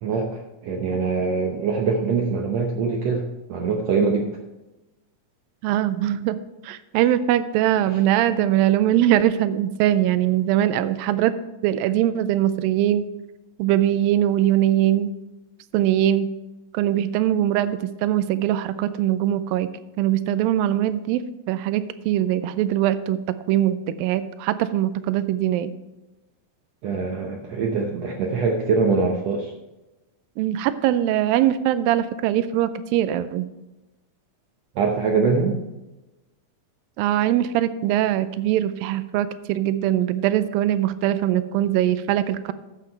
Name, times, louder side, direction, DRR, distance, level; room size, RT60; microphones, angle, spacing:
voice 1, 0.0-4.3 7.9-8.0 26.8-29.5 34.7-35.6, right 4 dB, 70° right, 1 dB, 1.6 m, -23 dB
voice 2, 5.6-6.4 6.6-11.3 11.6-13.1 13.6-15.1 15.7-16.3 16.7-19.7 20.0-21.2 21.5-23.2 23.5-25.7 30.4-33.5 37.0-42.5, right 12 dB, 90° right, 13 dB, 2.3 m, -21 dB
9.9 x 7.6 x 4.5 m, 1.0 s
omnidirectional pair, 4.0 m